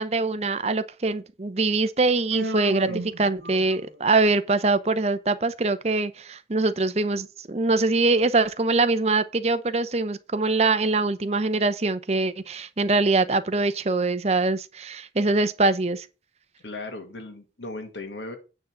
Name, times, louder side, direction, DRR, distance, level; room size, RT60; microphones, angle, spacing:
voice 1, 0.0-16.1, right 3 dB, 35° right, 0.7 m, -23 dB
Human voice, 2.3-4.0, right 2 dB, 70° right, 0.9 m, -33 dB
voice 2, 16.6-18.4, left 2 dB, 90° left, 1.9 m, -37 dB
9.2 x 3.9 x 7.2 m
head